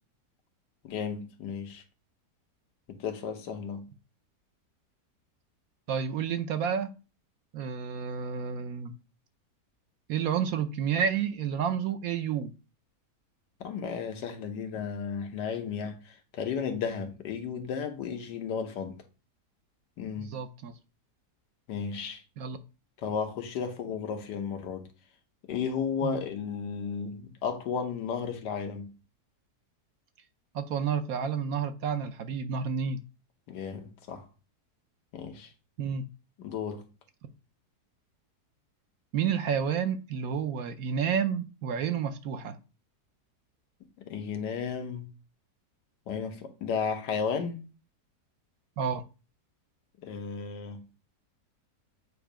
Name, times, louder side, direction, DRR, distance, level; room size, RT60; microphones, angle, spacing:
voice 1, 0.8-1.8 2.9-3.9 13.6-19.0 20.0-20.4 21.7-22.2 23.0-24.9 25.5-28.9 33.5-34.3 35.1-35.5 36.4-36.9 44.1-45.1 46.1-47.6 50.0-50.8, left 6 dB, 85° left, 1.6 m, -34 dB
voice 2, 5.9-6.9 7.5-8.9 10.1-12.5 20.2-20.7 22.4-22.6 26.0-26.2 30.5-33.0 35.8-36.0 39.1-42.6 48.8-49.0, right 7 dB, 65° right, 1.0 m, -30 dB
8.0 x 2.7 x 4.9 m
omnidirectional pair, 1.8 m